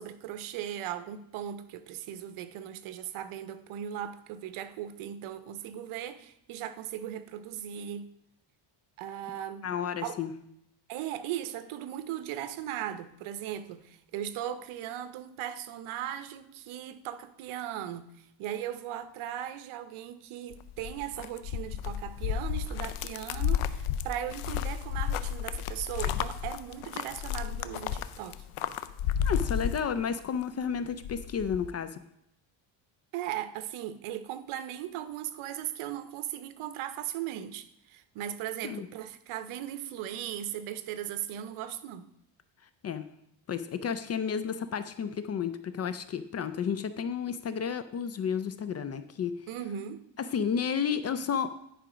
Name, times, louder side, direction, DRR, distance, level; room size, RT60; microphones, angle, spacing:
voice 1, 0.0-8.1 9.0-9.7 10.0-10.2 10.9-18.1 18.4-28.4 33.1-42.1 49.5-50.0, right 11 dB, 80° right, 12 dB, 0.9 m, -38 dB
voice 2, 9.6-10.3 29.2-32.0 38.6-38.9 42.8-43.1 43.5-49.4 50.2-51.5, left 7 dB, 35° left, 12 dB, 0.4 m, -32 dB
sound 1, 20.5-30.4 30.7-31.7, left 9 dB, 80° left, 0.7 m, -32 dB
10.5 x 4.9 x 5.0 m, 0.78 s
cardioid pair, 140°, 49 cm